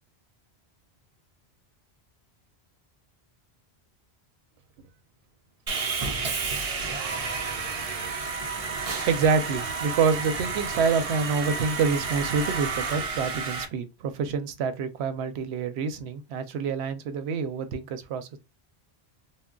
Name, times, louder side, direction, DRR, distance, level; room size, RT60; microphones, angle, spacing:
Sawing, 5.7-13.6, right 4 dB, 45° right, 0.5 m, -31 dB
voice 1, 9.0-18.4, right 5 dB, 80° right, 0.8 m, -27 dB
2.2 x 2.2 x 3.6 m
omnidirectional pair, 1.1 m